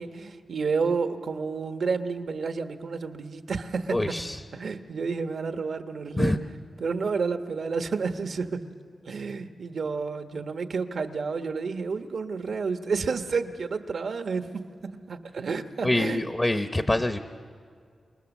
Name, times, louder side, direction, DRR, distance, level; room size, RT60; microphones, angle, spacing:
voice 1, 0.0-4.2 4.5-6.4 6.8-8.6 9.0-14.5 15.1-16.2, right 4 dB, 70° right, 7 dB, 1.2 m, -30 dB
voice 2, 3.9-4.4 6.2-6.4 15.8-17.2, left 1 dB, 25° left, 8 dB, 0.9 m, -25 dB
27.0 x 20.0 x 7.2 m, 2.2 s
cardioid pair, 65°, 0 cm